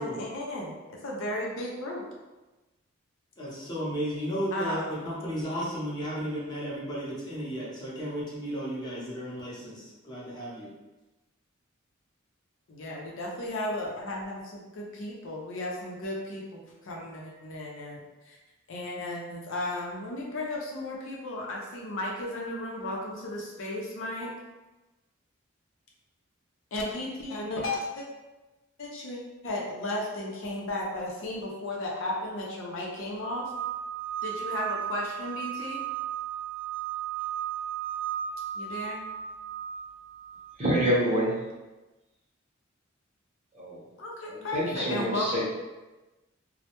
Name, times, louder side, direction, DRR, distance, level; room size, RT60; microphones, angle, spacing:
voice 1, 0.0-2.0 4.5-5.0 12.7-18.4 18.7-24.3 26.7-28.1 28.8-33.4 34.2-35.8 38.5-39.0 44.0-45.3, left 1 dB, 70° left, -2 dB, 0.5 m, -34 dB
voice 2, 3.4-10.7, equal, 20° left, -7 dB, 0.6 m, -34 dB
sound 1, 33.2-41.0, right 10 dB, 85° right, 0.4 m, -35 dB
voice 3, 40.6-41.4 43.5-43.8 44.2-45.4, equal, 35° right, -7 dB, 0.8 m, -27 dB
2.1 x 2.0 x 2.8 m, 1.1 s
head